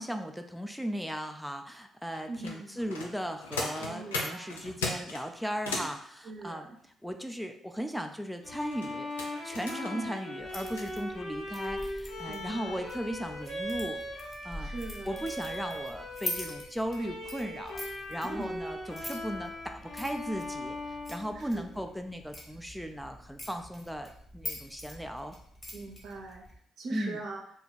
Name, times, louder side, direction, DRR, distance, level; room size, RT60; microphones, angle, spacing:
voice 1, 0.0-14.7 15.1-25.3 26.9-27.2, equal, ahead, 5 dB, 0.4 m, -37 dB
sound 1, 2.1-6.0 8.4-10.8 11.6-11.7 12.2-12.3 12.8-13.0 13.4-13.5, left 3 dB, 90° left, 0.4 m, -38 dB
voice 2, 2.3-2.8 3.8-4.6 6.2-6.8 9.7-10.2 12.3-12.9 14.6-15.1 18.2-18.5 21.3-21.8 25.7-26.5 26.8-27.4, right 2 dB, 65° right, 0 dB, 0.5 m, -41 dB
Bowed string instrument, 8.4-21.9, left 1 dB, 60° left, 1.5 m, -39 dB
sound 2, 10.4-26.6, left 1 dB, 30° left, 1.2 m, -45 dB
2.6 x 2.2 x 4.0 m, 0.64 s
hypercardioid pair, 45°, 0 cm